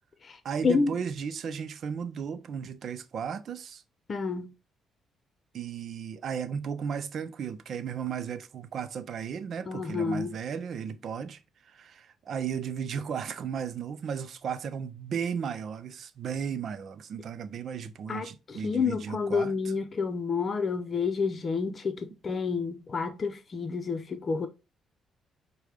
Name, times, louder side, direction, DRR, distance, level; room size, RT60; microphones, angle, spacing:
voice 1, 0.4-3.8 5.5-11.4 11.7-19.5, right 7 dB, 60° right, 0.5 m, -35 dB
voice 2, 4.1-4.5 9.7-10.3 18.1-24.5, left 5 dB, 40° left, 0.7 m, -29 dB
6.2 x 2.2 x 3.4 m
cardioid pair, 90°, 0 cm